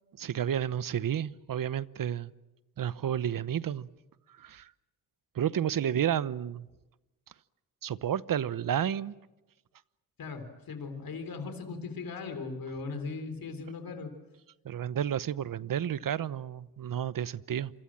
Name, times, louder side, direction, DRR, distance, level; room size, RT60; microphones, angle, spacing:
voice 1, 0.2-2.3 2.8-3.9 4.4-4.7 5.3-6.7 7.8-9.1 14.6-17.7, right 9 dB, 60° right, 0.9 m, -31 dB
voice 2, 10.2-14.1, left 4 dB, 65° left, 3.7 m, -38 dB
28.0 x 24.5 x 7.6 m
cardioid pair, 80°, 37 cm